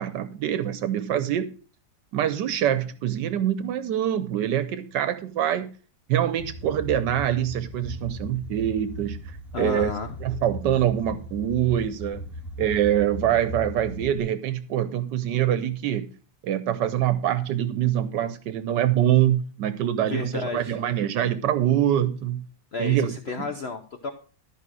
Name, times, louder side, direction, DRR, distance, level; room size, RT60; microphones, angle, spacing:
voice 1, 0.0-1.5 2.1-5.7 6.1-9.2 9.6-9.9 10.2-12.2 12.6-16.1 16.4-22.5 22.8-23.1 23.4-23.5, right 11 dB, 80° right, 13 dB, 1.3 m, -24 dB
sound 1, 6.4-14.2, equal, ahead, 1.9 m, -37 dB
voice 2, 9.5-10.1 20.1-20.8 22.7-24.1, left 4 dB, 50° left, 7 dB, 0.9 m, -32 dB
13.0 x 5.0 x 6.2 m, 0.38 s
omnidirectional pair, 1.9 m